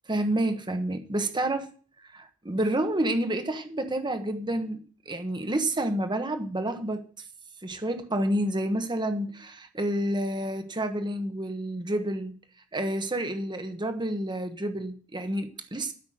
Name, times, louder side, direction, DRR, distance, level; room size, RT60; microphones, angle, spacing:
voice 1, 0.1-1.7 2.1-7.1 7.6-12.4 12.7-15.9, right 1 dB, 20° right, 1.2 m, -29 dB
13.0 x 6.0 x 7.8 m
head